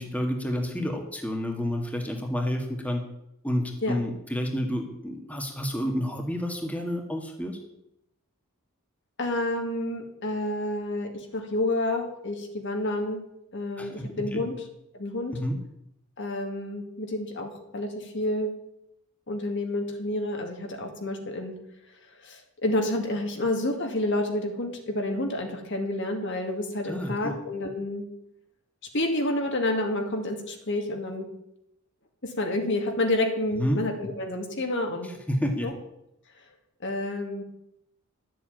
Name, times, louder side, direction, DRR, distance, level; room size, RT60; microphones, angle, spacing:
voice 1, 0.0-3.0 3.4-7.6 13.8-14.4 15.3-15.6 26.9-27.4 33.5-33.8 35.3-35.7, equal, 5° left, 2 dB, 1.7 m, -29 dB
voice 2, 9.2-13.2 13.5-14.6 14.9-15.3 16.2-18.5 19.3-21.5 22.2-28.1 28.9-31.3 32.2-35.1 35.6-35.7 36.8-37.4, left 1 dB, 55° left, 4 dB, 2.3 m, -29 dB
12.5 x 7.8 x 8.8 m, 0.83 s
head